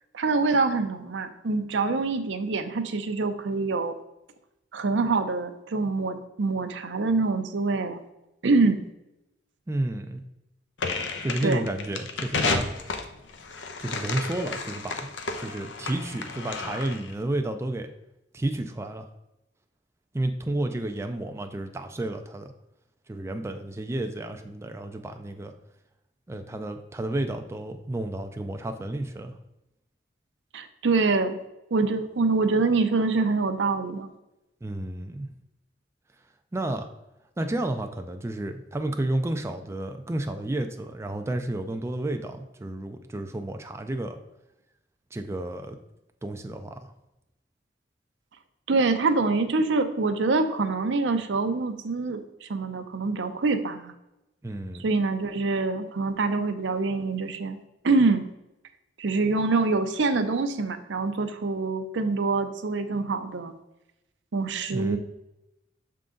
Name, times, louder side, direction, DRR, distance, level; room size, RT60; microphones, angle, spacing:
voice 1, 0.1-3.9 4.7-8.0 8.4-8.8 11.4-11.7 30.5-31.4 31.7-34.1 48.7-53.9 54.8-57.6 57.8-58.3 59.0-63.5 64.3-65.0, right 3 dB, 75° right, 8 dB, 0.6 m, -25 dB
voice 2, 9.7-10.2 11.2-12.7 13.8-15.1 15.4-17.9 18.3-19.1 20.1-22.5 23.1-25.5 26.3-29.4 34.6-35.3 36.5-36.9 37.4-44.2 45.1-45.8 46.2-46.9 54.4-54.8 64.7-65.0, right 1 dB, 15° right, 5 dB, 0.3 m, -31 dB
sound 1, 10.8-17.1, left 4 dB, 75° left, 0.7 m, -32 dB
6.7 x 3.8 x 3.7 m, 0.91 s
head